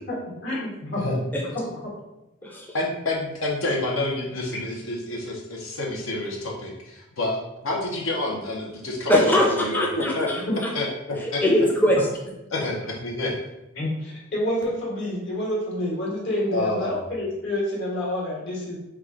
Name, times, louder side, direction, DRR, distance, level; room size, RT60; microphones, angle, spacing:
voice 1, 0.4-1.0 1.5-1.6 13.7-18.8, left 1 dB, 60° left, -4 dB, 1.5 m, -28 dB
voice 2, 2.7-10.3 10.7-11.4 12.5-13.3 16.5-17.0, left 2 dB, 80° left, -2 dB, 0.8 m, -28 dB
voice 3, 9.1-10.7 11.4-12.1, left 1 dB, 10° left, -2 dB, 0.4 m, -21 dB
4.8 x 2.3 x 3.7 m, 0.94 s
head